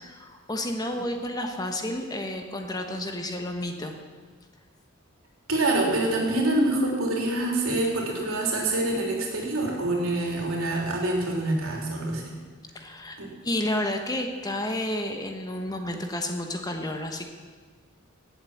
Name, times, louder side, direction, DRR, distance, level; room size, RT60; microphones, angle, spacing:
voice 1, 0.0-4.0 12.7-17.2, left 1 dB, 20° left, 4 dB, 1.2 m, -31 dB
voice 2, 5.5-12.4 13.2-13.3, right 2 dB, 85° right, -1 dB, 3.4 m, -26 dB
18.0 x 7.9 x 7.3 m, 1.5 s
head